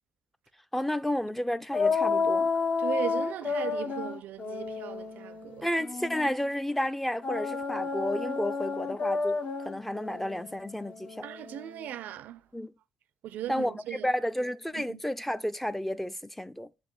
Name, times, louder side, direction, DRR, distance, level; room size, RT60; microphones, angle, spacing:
voice 1, 0.7-2.5 5.6-11.3 12.5-12.7 13.5-16.7, left 1 dB, 5° left, 0.5 m, -31 dB
sound 1, 1.7-6.4 7.2-11.9, left 4 dB, 45° left, 1.0 m, -31 dB
voice 2, 2.8-5.7 11.2-12.4 13.2-14.1 14.7-15.0, right 12 dB, 70° right, 0.4 m, -38 dB
7.7 x 2.6 x 5.5 m
hypercardioid pair, 50°, 3 cm